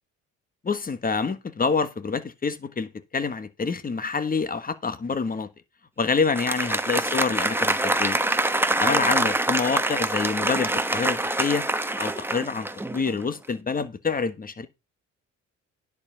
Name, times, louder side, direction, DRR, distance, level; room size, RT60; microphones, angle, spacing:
voice 1, 0.6-5.5 6.0-8.2 8.8-11.6 12.0-12.7 12.9-14.7, left 5 dB, 30° left, 1.4 m, -27 dB
Applause, 6.2-13.2, right 1 dB, 5° right, 1.1 m, -25 dB
10.5 x 4.7 x 6.8 m
cardioid pair, 90°, 30 cm